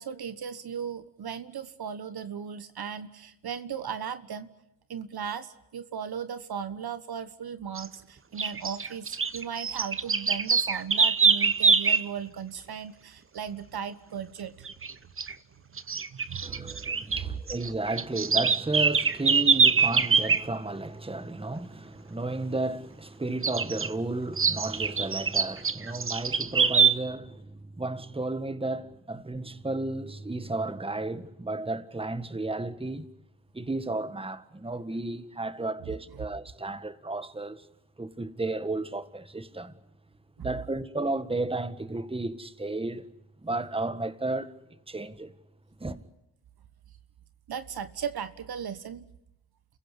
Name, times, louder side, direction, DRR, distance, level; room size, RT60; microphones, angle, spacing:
voice 1, 0.0-4.5 4.9-14.7 16.1-16.8 17.1-17.3 35.9-36.0 40.4-40.5 47.5-49.1, right 7 dB, 55° right, 1.4 m, -37 dB
sound 1, 7.8-7.9 8.4-12.1 14.7-14.9 15.2-15.3 15.8-17.2 17.5-20.4 23.4-23.9 24.4-26.9, right 5 dB, 30° right, 1.1 m, -24 dB
voice 2, 16.4-33.1 33.5-37.7 38.0-39.7 40.4-43.0 43.4-45.3 45.8-46.0, right 2 dB, 10° right, 1.7 m, -33 dB
30.0 x 16.0 x 9.8 m
hypercardioid pair, 45°, 45 cm